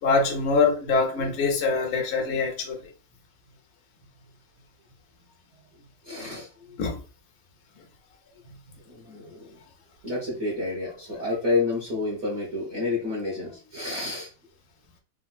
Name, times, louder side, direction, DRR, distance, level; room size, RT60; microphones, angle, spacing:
voice 1, 0.0-2.9 6.8-7.0, left 4 dB, 85° left, 0.6 m, -24 dB
voice 2, 6.0-6.8 8.8-9.6 10.0-14.3, left 3 dB, 45° right, 1.1 m, -29 dB
3.5 x 2.6 x 2.3 m
omnidirectional pair, 2.1 m